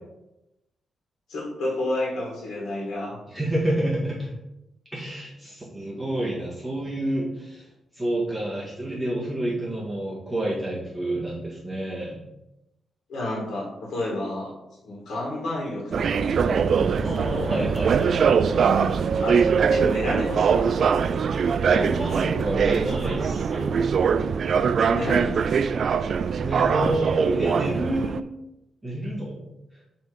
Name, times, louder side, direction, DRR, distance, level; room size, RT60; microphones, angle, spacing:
voice 1, 1.3-3.2 13.1-14.5 14.8-17.5 19.2-20.7 24.9-25.6, left 1 dB, 85° left, -4 dB, 2.3 m, -30 dB
voice 2, 3.3-4.3 4.9-7.7 7.9-12.2 17.0-18.6 21.7-23.9 26.4-28.2 28.8-29.4, right 1 dB, 5° right, -7 dB, 1.8 m, -29 dB
sound 1, 15.9-28.2, right 6 dB, 50° right, 0.3 m, -22 dB
7.6 x 3.7 x 5.3 m, 0.92 s
wide cardioid pair, 150°, 0 cm